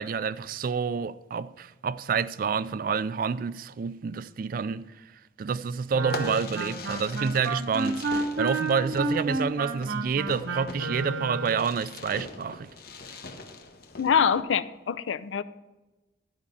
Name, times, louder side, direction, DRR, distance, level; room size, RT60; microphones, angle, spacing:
voice 1, 0.0-4.9 5.4-12.7, right 6 dB, 45° right, 0.3 m, -28 dB
Wind instrument woodwind instrument, 5.9-11.7, right 3 dB, 80° right, 1.0 m, -31 dB
Fireworks, 6.0-14.4, left 3 dB, 55° left, 1.0 m, -42 dB
voice 2, 14.0-15.4, left 7 dB, 80° left, 0.5 m, -24 dB
12.5 x 5.2 x 6.9 m
head